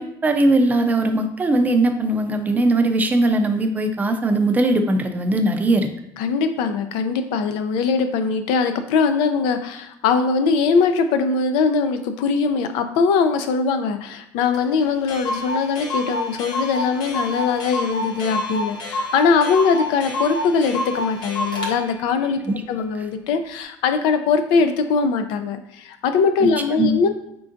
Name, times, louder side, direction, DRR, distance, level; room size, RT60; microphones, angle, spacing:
voice 1, 0.0-5.9 22.5-22.6 26.4-26.5 26.8-27.0, right 2 dB, 20° right, 6 dB, 0.4 m, -19 dB
voice 2, 6.2-22.4 22.7-27.1, left 5 dB, 75° left, 8 dB, 0.4 m, -21 dB
Clock, 14.5-14.6 14.8-14.9 15.1-21.7, left 1 dB, 50° left, 1.1 m, -28 dB
4.4 x 3.7 x 2.5 m, 0.78 s
cardioid pair, 120°, 9 cm